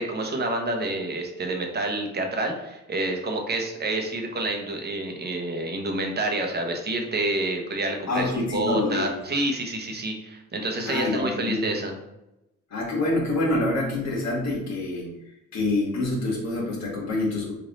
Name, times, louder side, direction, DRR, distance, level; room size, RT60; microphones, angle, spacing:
voice 1, 0.0-11.9, right 2 dB, 35° right, 3 dB, 0.8 m, -28 dB
voice 2, 8.1-9.2 10.8-11.7 12.7-15.1 15.5-17.5, left 2 dB, 60° left, -4 dB, 1.3 m, -26 dB
3.2 x 2.6 x 3.9 m, 0.92 s
cardioid pair, 90°, 30 cm